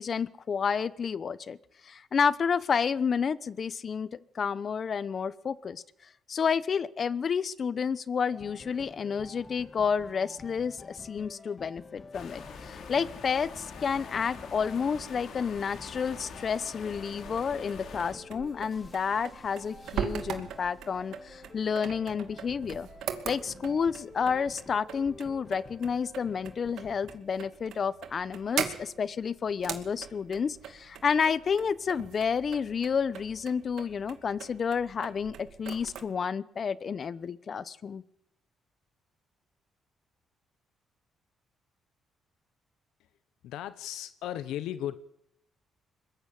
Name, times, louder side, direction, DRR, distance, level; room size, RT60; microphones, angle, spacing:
voice 1, 0.0-1.6 1.8-5.8 6.3-22.9 23.2-38.0, left 6 dB, 45° left, 18 dB, 0.9 m, -30 dB
sound 1, 8.3-27.2, left 3 dB, 30° left, 1.6 m, -50 dB
sound 2, 12.1-18.1, left 5 dB, 70° left, 4.3 m, -45 dB
sound 3, 16.9-36.0, right 9 dB, 80° right, 2.5 m, -41 dB
voice 2, 43.4-45.0, left 12 dB, 90° left, 14 dB, 0.9 m, -36 dB
22.5 x 21.0 x 7.7 m, 0.76 s
cardioid pair, 90°, 0 cm